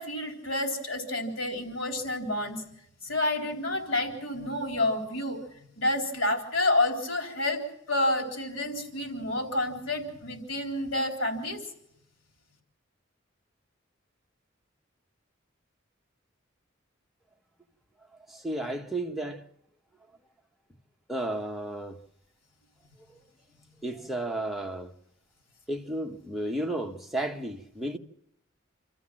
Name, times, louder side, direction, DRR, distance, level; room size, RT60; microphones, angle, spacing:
voice 1, 0.0-2.6 3.0-5.4 5.7-7.6 7.9-11.6, left 1 dB, 85° left, 3.9 m, -29 dB
voice 2, 18.3-19.4 21.1-22.0 23.1-23.2 23.8-24.9 25.7-28.0, right 1 dB, ahead, 1.1 m, -33 dB
27.5 x 13.5 x 7.5 m
head